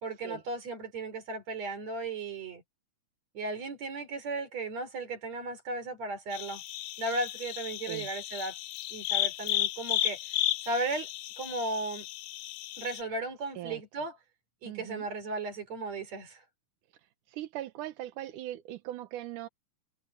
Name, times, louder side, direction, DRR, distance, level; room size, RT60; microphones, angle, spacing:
voice 1, 0.0-2.6 3.3-6.6 7.0-8.6 8.9-10.2 10.7-11.1 11.4-12.1 12.8-14.2 14.6-16.4, right 2 dB, 45° right, 5.2 m, -35 dB
sound 1, 6.3-13.0, left 15 dB, 85° left, 2.8 m, -34 dB
voice 2, 14.7-15.1 17.3-19.5, right 14 dB, 70° right, 2.1 m, -40 dB
omnidirectional pair, 4.5 m